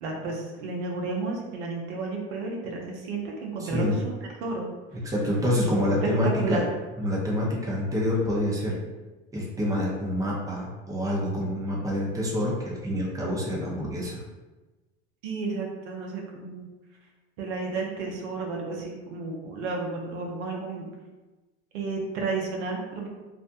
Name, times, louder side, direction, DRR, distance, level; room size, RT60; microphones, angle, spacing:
voice 1, 0.0-4.1 4.4-4.7 6.0-6.1 6.4-6.6 15.2-16.7 17.4-20.9 21.7-23.1, right 3 dB, 75° right, 0 dB, 0.6 m, -32 dB
voice 2, 3.6-4.0 5.0-6.6 7.0-8.8 9.3-14.2, left 1 dB, 10° right, -4 dB, 0.7 m, -27 dB
2.5 x 2.1 x 2.6 m, 1.2 s
hypercardioid pair, 80°, 35 cm